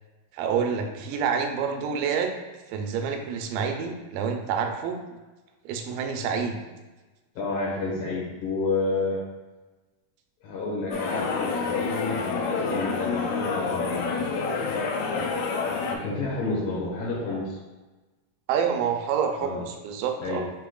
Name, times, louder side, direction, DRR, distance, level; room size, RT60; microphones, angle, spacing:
voice 1, 0.3-2.3 2.7-5.0 5.7-6.6 18.5-20.4, right 6 dB, 80° right, 4 dB, 2.2 m, -27 dB
voice 2, 7.4-9.2 10.4-14.1 15.9-17.6 19.4-19.7 20.2-20.4, left 3 dB, 70° left, -6 dB, 2.3 m, -30 dB
sound 1, 10.9-16.0, left 4 dB, 85° left, 1.7 m, -28 dB
6.1 x 3.7 x 2.3 m, 1.2 s
omnidirectional pair, 4.0 m